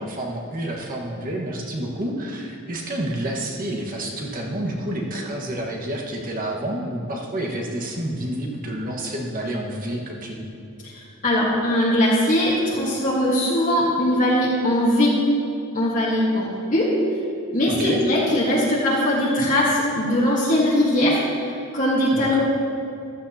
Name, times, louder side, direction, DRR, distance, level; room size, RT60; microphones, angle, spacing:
voice 1, 0.0-10.5 17.7-18.0 22.1-22.4, right 1 dB, 40° right, -1 dB, 1.5 m, -29 dB
voice 2, 10.8-15.2 15.7-17.0 17.5-21.2 21.7-22.4, left 1 dB, 35° left, -7 dB, 1.5 m, -20 dB
14.5 x 12.5 x 2.9 m, 2.6 s
head